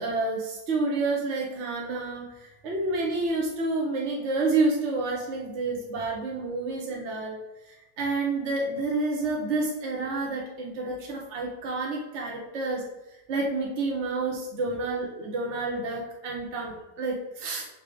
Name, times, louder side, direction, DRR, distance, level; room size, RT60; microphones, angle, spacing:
voice 1, 0.0-7.4 7.6-12.8 13.3-17.6, right 3 dB, 55° right, -1 dB, 1.2 m, -29 dB
6.1 x 3.8 x 5.0 m, 0.99 s
omnidirectional pair, 1.5 m